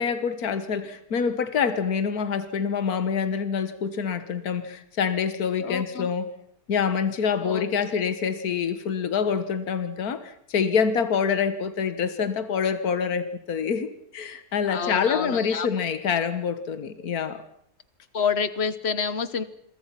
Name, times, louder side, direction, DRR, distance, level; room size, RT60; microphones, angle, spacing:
voice 1, 0.0-6.3 6.7-17.4, left 6 dB, 75° left, 11 dB, 1.9 m, -26 dB
voice 2, 5.6-6.1 7.4-7.6 14.7-15.7 18.1-19.4, left 6 dB, 45° left, 15 dB, 1.4 m, -28 dB
27.5 x 22.5 x 5.9 m, 0.69 s
omnidirectional pair, 1.6 m